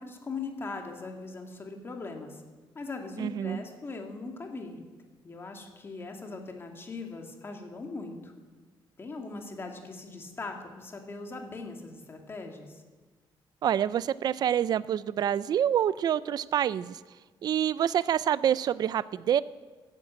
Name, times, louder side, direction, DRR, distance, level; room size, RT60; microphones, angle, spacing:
voice 1, 0.0-2.4 2.7-4.8 5.2-8.3 9.0-12.8, left 3 dB, 25° left, 3 dB, 2.3 m, -40 dB
voice 2, 3.2-3.6 13.6-17.0 17.4-19.4, right 9 dB, 50° right, 17 dB, 0.4 m, -27 dB
15.0 x 10.5 x 8.9 m, 1.3 s
cardioid pair, 155°, 9 cm